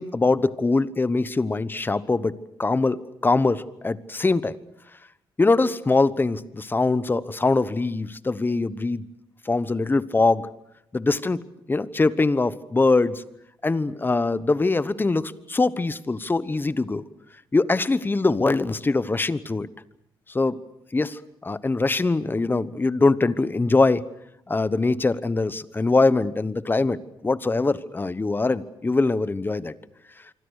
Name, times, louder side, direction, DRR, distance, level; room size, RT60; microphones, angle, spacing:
voice 1, 0.0-4.6 5.4-9.1 9.4-10.5 10.9-13.2 13.6-17.0 17.5-19.7 20.3-20.6 20.9-24.0 24.5-27.0 27.2-29.7, left 3 dB, 20° left, 16 dB, 1.1 m, -23 dB
26.0 x 25.0 x 6.5 m, 0.81 s
cardioid pair, 95°, 9 cm